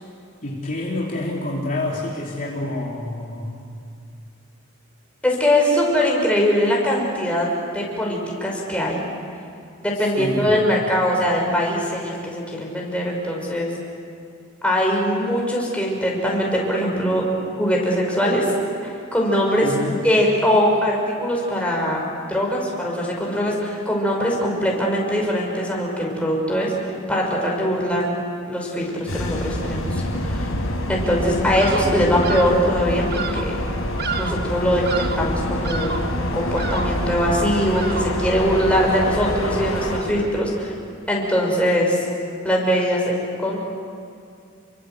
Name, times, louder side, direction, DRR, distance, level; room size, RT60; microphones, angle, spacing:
voice 1, 0.4-3.6 9.9-10.5 19.6-20.0, left 1 dB, 40° left, -3 dB, 3.1 m, -28 dB
voice 2, 5.2-7.5 7.7-9.0 9.8-13.7 14.6-18.5 18.8-19.7 20.0-22.0 22.3-26.7 27.1-28.1 28.5-30.5 30.9-33.5 34.2-35.9 36.2-40.7 41.1-42.0 42.4-43.6, equal, 5° left, -2 dB, 6.0 m, -21 dB
sound 1, 29.1-40.0, left 1 dB, 80° left, 4.9 m, -26 dB
Bird vocalization bird call bird song, 31.5-32.0 32.2-32.7 33.1-33.5 34.0-34.5 34.8-35.3 35.6-36.2 36.6-37.1 37.7-38.3, right 5 dB, 50° right, 1.4 m, -31 dB
29.5 x 24.0 x 7.9 m, 2.4 s
head